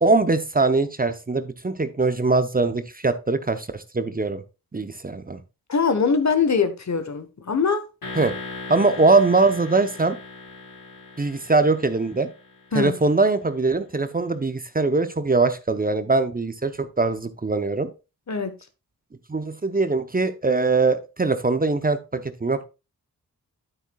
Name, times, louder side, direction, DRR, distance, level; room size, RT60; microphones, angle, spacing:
voice 1, 0.0-4.4 4.7-5.4 8.2-8.3 8.7-10.2 11.2-12.3 12.7-17.9 19.3-22.6, right 3 dB, 25° right, 0.8 m, -22 dB
voice 2, 5.7-7.8 12.7-13.0 18.3-18.6, left 5 dB, 50° left, 1.2 m, -22 dB
sound 1, 8.0-12.9, left 3 dB, 75° left, 3.5 m, -39 dB
9.1 x 8.1 x 2.3 m
cardioid pair, 45°, 35 cm